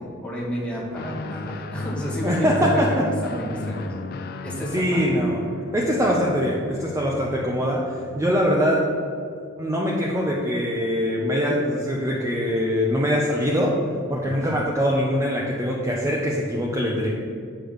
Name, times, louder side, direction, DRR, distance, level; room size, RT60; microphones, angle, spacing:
voice 1, 0.0-2.8 3.2-5.0 14.2-14.5, equal, 5° left, -5 dB, 1.5 m, -32 dB
Guitar, 0.9-8.6, left 2 dB, 50° left, 0.4 m, -34 dB
voice 2, 2.2-3.1 4.7-5.4 5.7-8.8 9.6-13.7 14.1-17.1, equal, 15° right, -3 dB, 0.6 m, -23 dB
7.9 x 3.4 x 6.4 m, 2.4 s
head